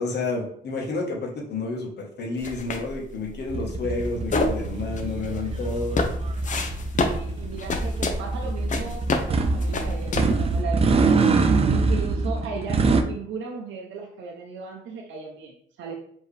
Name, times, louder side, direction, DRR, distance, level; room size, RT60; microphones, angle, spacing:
voice 1, 0.0-6.1, left 3 dB, 60° left, 0 dB, 1.2 m, -30 dB
sound 1, 2.4-10.6, left 3 dB, 40° left, 0.6 m, -29 dB
sound 2, 3.5-13.0, right 3 dB, 30° right, 0.5 m, -24 dB
voice 2, 4.7-5.5 7.1-16.0, right 5 dB, 70° right, 0 dB, 0.7 m, -36 dB
4.5 x 3.0 x 3.3 m, 0.66 s
cardioid pair, 90°, 20 cm